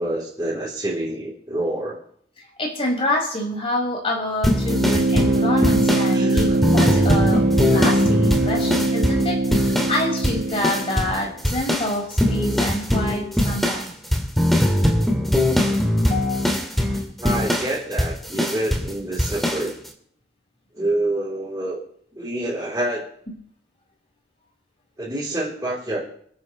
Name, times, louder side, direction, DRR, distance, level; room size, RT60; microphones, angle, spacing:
voice 1, 0.0-2.0 6.1-6.6 17.2-19.7 20.7-21.8 22.1-23.0 25.0-26.0, right 1 dB, 20° right, -8 dB, 3.7 m, -27 dB
voice 2, 2.6-13.9 16.1-16.4, left 1 dB, 35° left, -1 dB, 5.6 m, -27 dB
sound 1, 4.4-10.0 10.2-11.2 11.4-18.9 19.2-19.6, left 1 dB, ahead, 2.3 m, -21 dB
sound 2, 4.7-11.3, right 2 dB, 80° right, 1.5 m, -22 dB
27.5 x 9.4 x 3.2 m, 0.64 s
head